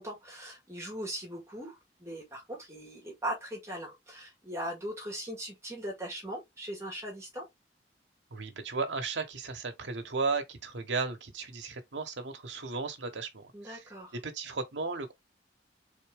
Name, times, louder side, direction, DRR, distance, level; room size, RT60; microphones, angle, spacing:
voice 1, 0.0-1.8 2.0-7.5 13.5-14.1, right 1 dB, 15° right, 2.0 m, -39 dB
voice 2, 8.3-15.1, right 4 dB, 85° right, 1.2 m, -35 dB
4.0 x 3.5 x 3.5 m
head